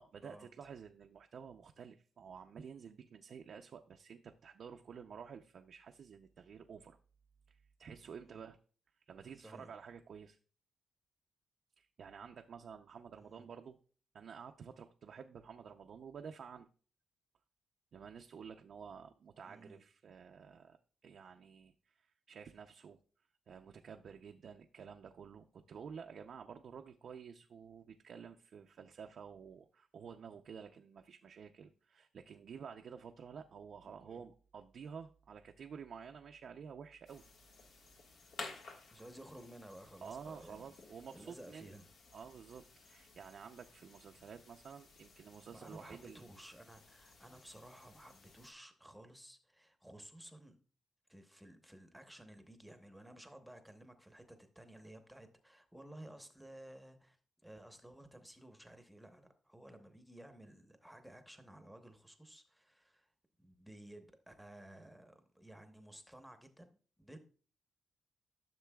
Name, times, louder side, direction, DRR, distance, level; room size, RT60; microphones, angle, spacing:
voice 1, 0.0-7.0 7.5-8.6 9.1-10.4 11.8-13.8 14.1-16.7 17.9-20.8 21.0-23.0 23.5-37.2 40.0-41.7 42.1-46.2, right 6 dB, 55° right, 4 dB, 0.5 m, -51 dB
voice 2, 9.4-9.7 13.2-13.5 19.4-19.8 34.0-34.2 38.9-40.8 41.1-41.9 45.5-50.6 51.1-57.2 57.4-63.1 63.4-67.2, right 1 dB, ahead, 7 dB, 0.9 m, -55 dB
sound 1, 37.1-48.5, left 4 dB, 70° left, 1.5 m, -55 dB
13.5 x 6.7 x 2.3 m, 0.40 s
cardioid pair, 125°, 0 cm